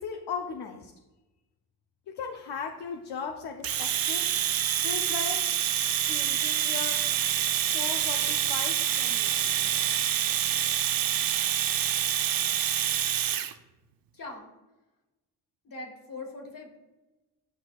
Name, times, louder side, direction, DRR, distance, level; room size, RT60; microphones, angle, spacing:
voice 1, 0.0-0.9 2.2-4.3 4.8-5.4 6.0-7.0 7.7-9.7, left 5 dB, 80° left, 3 dB, 0.7 m, -37 dB
Domestic sounds home sounds, 3.6-13.5, right 10 dB, 60° right, 0.6 m, -27 dB
voice 2, 14.1-14.5 15.6-16.8, left 2 dB, 55° left, 0 dB, 1.7 m, -41 dB
9.6 x 5.9 x 2.4 m, 1.1 s
cardioid pair, 70°, 40 cm